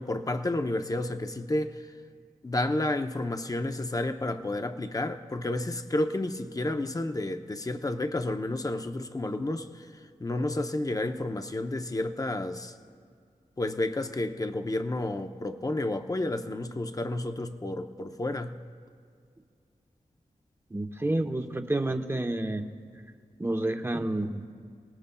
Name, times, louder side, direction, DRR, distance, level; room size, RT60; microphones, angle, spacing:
voice 1, 0.0-1.7 2.4-9.8 10.2-12.7 13.6-18.6, left 2 dB, 25° left, 7 dB, 0.7 m, -31 dB
voice 2, 20.7-22.6 23.4-24.4, right 1 dB, 15° right, 5 dB, 0.9 m, -29 dB
29.5 x 19.0 x 2.3 m, 2.2 s
wide cardioid pair, 100°, 14 cm